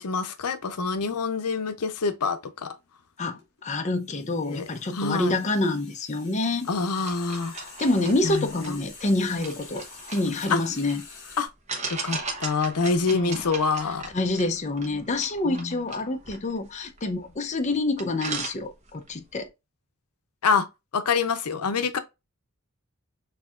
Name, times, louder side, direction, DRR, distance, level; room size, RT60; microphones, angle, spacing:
voice 1, 0.0-2.8 4.5-4.7 4.9-5.4 6.7-7.5 8.2-8.8 10.5-10.6 11.4-11.5 11.9-14.1 15.5-15.7 20.4-20.7 20.9-22.0, left 4 dB, 90° left, 0.6 m, -26 dB
sound 1, 2.6-2.9 3.2-11.5, left 4 dB, 55° left, 2.5 m, -47 dB
voice 2, 3.2-6.7 7.5-11.0 13.1-13.4 14.1-19.5, left 2 dB, 30° left, 0.6 m, -27 dB
sound 2, 7.0-11.0 11.7-17.3 17.7-17.8 18.0-19.1, right 3 dB, 30° right, 1.0 m, -37 dB
6.6 x 2.7 x 2.4 m
head